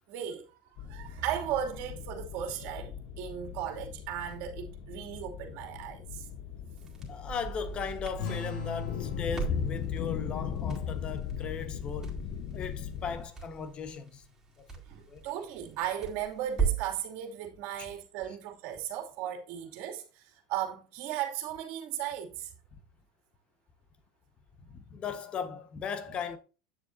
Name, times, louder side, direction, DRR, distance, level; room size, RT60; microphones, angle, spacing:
voice 1, 0.1-6.3 14.9-22.5, right 10 dB, 60° right, 2.6 m, -36 dB
sound 1, 0.8-13.3, left 8 dB, 55° left, 1.0 m, -38 dB
Crackle, 6.8-17.0, right 6 dB, 15° right, 3.8 m, -39 dB
voice 2, 7.0-12.2 12.5-14.3 14.6-14.7 15.0-15.3 17.8-17.9 24.6-26.4, left 6 dB, 35° left, 1.3 m, -38 dB
sound 2, 8.2-13.2, left 8 dB, 70° left, 4.2 m, -42 dB
9.3 x 7.0 x 2.7 m
supercardioid pair, 115°, 3 cm